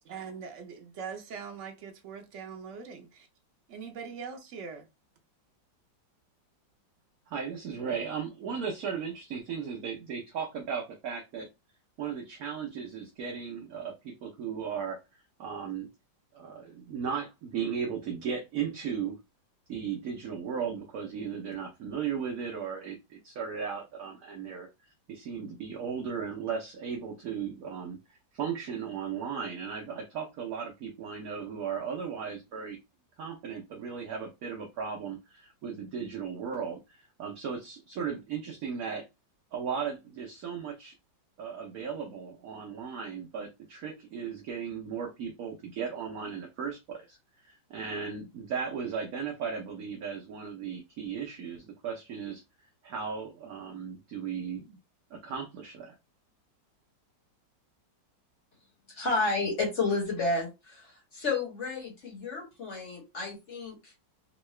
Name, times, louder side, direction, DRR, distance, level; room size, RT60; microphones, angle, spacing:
voice 1, 0.0-3.3 3.7-4.9, right 6 dB, 80° right, 0.6 m, -42 dB
voice 2, 7.3-11.5 12.0-15.0 15.4-15.9 16.3-19.2 19.7-24.7 25.1-28.0 28.3-32.8 33.2-39.0 39.5-40.9 41.4-52.4 52.8-54.8 55.1-55.9, right 6 dB, 60° right, 1.0 m, -36 dB
voice 3, 58.9-63.9, left 3 dB, 40° left, 1.5 m, -31 dB
3.7 x 2.3 x 3.1 m
omnidirectional pair, 2.0 m